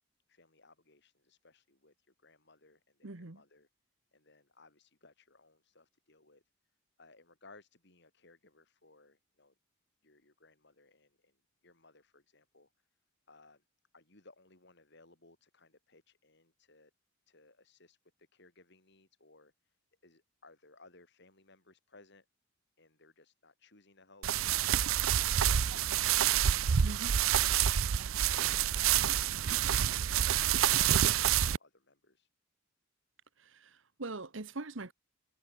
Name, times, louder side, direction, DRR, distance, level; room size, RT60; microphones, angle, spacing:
voice 1, 0.3-3.7 4.1-6.4 7.0-9.5 10.0-11.4 11.6-12.9 13.3-13.6 13.9-16.9 17.3-19.8 20.0-22.3 22.8-29.5 30.7-32.3, left 3 dB, 55° left, 5.3 m, -62 dB
voice 2, 3.0-3.4 26.8-27.1 33.4-34.9, right 2 dB, 65° right, 1.4 m, -42 dB
sound 1, 24.2-31.6, right 10 dB, 80° right, 0.6 m, -28 dB
head